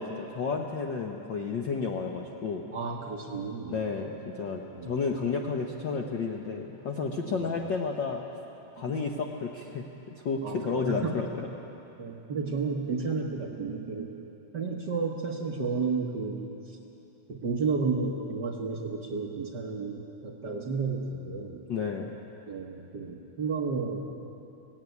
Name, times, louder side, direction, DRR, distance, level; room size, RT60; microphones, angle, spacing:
voice 1, 0.0-2.6 3.7-8.2 8.7-9.9 10.2-11.5 21.7-22.1, left 5 dB, 70° left, 1 dB, 1.0 m, -31 dB
voice 2, 2.7-3.8 4.7-5.0 7.3-7.5 10.4-11.1 12.0-14.2 14.5-16.4 16.7-16.8 17.3-21.6 22.5-24.1, right 4 dB, 55° right, 0 dB, 1.3 m, -32 dB
17.0 x 16.5 x 9.4 m, 3.0 s
omnidirectional pair, 3.4 m